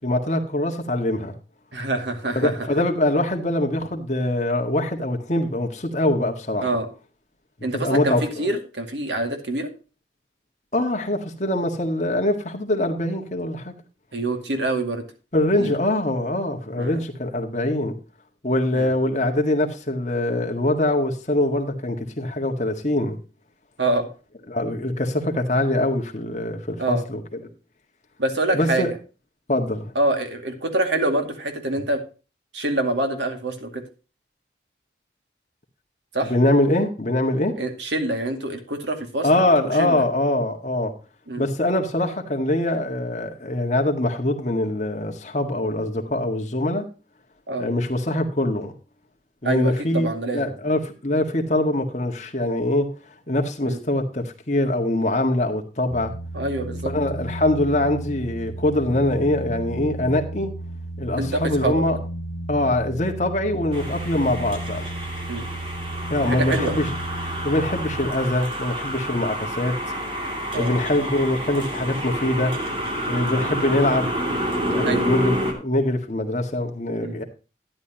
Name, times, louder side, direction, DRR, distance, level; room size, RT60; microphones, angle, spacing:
voice 1, 0.0-1.3 2.3-6.7 7.7-8.5 10.7-13.7 15.3-17.9 18.4-23.2 24.5-27.2 28.5-28.9 29.5-29.9 36.2-37.5 39.2-40.9 41.4-46.9 47.6-48.7 49.4-50.1 50.3-52.9 53.3-56.1 56.8-60.5 61.0-62.0 62.5-64.9 66.1-66.9 67.4-69.8 70.5-72.6 73.1-74.1 74.7-77.2, left 1 dB, 40° left, 1.8 m, -23 dB
voice 2, 1.7-2.7 6.6-6.9 7.6-9.7 14.1-15.0 15.6-15.7 16.8-17.0 18.7-18.9 23.8-24.1 26.8-27.1 28.2-28.9 30.0-32.0 32.5-33.8 36.1-36.3 37.6-39.3 39.7-40.1 41.3-41.4 47.5-47.7 49.4-50.6 53.6-53.8 56.3-56.9 61.2-61.8 65.3-65.5 66.2-66.7 70.5-70.7 73.1-73.3 74.8-75.1 77.0-77.2, right 2 dB, 85° right, 2.3 m, -26 dB
sound 1, 55.9-68.1, right 1 dB, 75° left, 1.5 m, -33 dB
sound 2, 63.7-75.5, equal, 30° right, 2.7 m, -29 dB
12.0 x 10.5 x 2.9 m
head